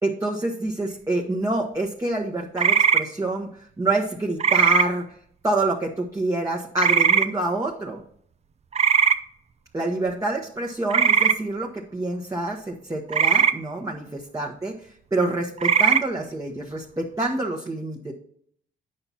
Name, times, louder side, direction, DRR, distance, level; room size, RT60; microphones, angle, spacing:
voice 1, 0.0-3.5 3.8-5.1 5.4-8.0 9.7-14.0 14.3-18.1, right 2 dB, 15° right, -1 dB, 1.1 m, -27 dB
sound 1, 2.6-3.0 4.4-4.9 6.8-7.3 8.7-9.2 10.9-11.4 13.1-13.5 15.6-16.0, right 6 dB, 35° right, 0.5 m, -18 dB
8.7 x 5.9 x 4.1 m, 0.62 s
cardioid pair, 90°, 20 cm